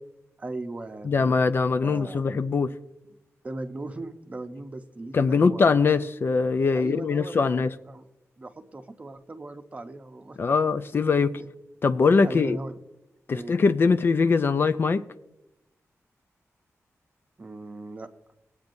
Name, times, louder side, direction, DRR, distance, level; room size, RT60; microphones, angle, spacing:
voice 1, 0.4-1.5 1.8-2.2 3.4-5.8 6.7-8.0 8.4-10.5 12.2-12.8 13.3-13.6 17.4-18.1, right 2 dB, 25° right, 0.7 m, -38 dB
voice 2, 1.1-2.7 5.1-7.7 10.4-11.4 11.8-12.6 13.3-15.0, left 4 dB, 45° left, 0.3 m, -22 dB
20.0 x 8.3 x 2.6 m
wide cardioid pair, 175°, 5 cm